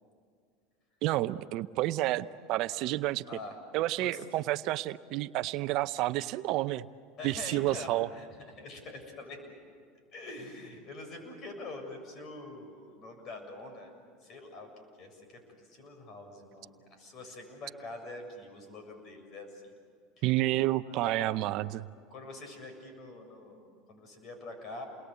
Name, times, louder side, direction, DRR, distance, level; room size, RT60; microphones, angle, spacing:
voice 1, 1.0-3.2 3.7-6.9 7.2-8.1 20.2-21.9, right 16 dB, 60° right, 14 dB, 0.7 m, -30 dB
voice 2, 3.3-3.6 4.0-4.2 7.2-9.5 10.1-13.9 14.2-14.7 15.0-19.7 20.2-20.3 20.9-21.4 22.1-24.8, left 2 dB, 45° left, 5 dB, 7.2 m, -45 dB
29.5 x 21.5 x 8.3 m, 2.3 s
supercardioid pair, 105°, 0 cm